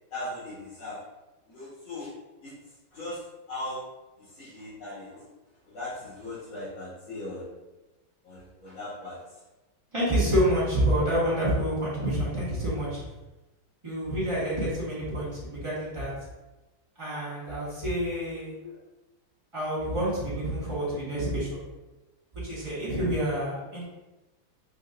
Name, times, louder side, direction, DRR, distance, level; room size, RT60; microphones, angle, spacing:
voice 1, 0.1-1.0 1.5-2.1 2.4-3.8 4.2-5.3 5.7-7.5 8.2-9.4 18.6-18.8 22.6-23.0, left 1 dB, 90° left, -11 dB, 2.1 m, -39 dB
voice 2, 9.9-13.0 13.8-16.1 17.0-18.5 19.5-21.6 22.3-23.8, equal, 20° right, -8 dB, 1.1 m, -28 dB
5.5 x 2.6 x 2.5 m, 1.1 s
omnidirectional pair, 2.1 m